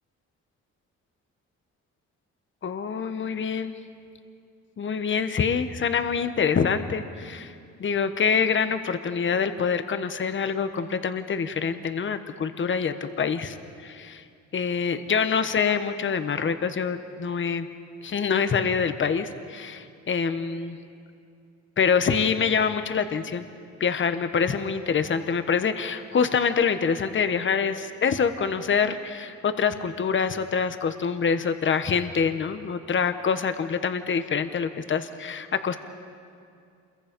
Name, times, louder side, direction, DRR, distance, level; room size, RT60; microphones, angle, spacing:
voice 1, 2.6-3.7 4.8-7.5 7.8-14.2 14.5-17.7 18.0-20.8 21.8-23.5 23.8-35.8, left 6 dB, 40° left, 10 dB, 1.2 m, -25 dB
27.5 x 22.5 x 5.3 m, 2.3 s
cardioid pair, 90°, 30 cm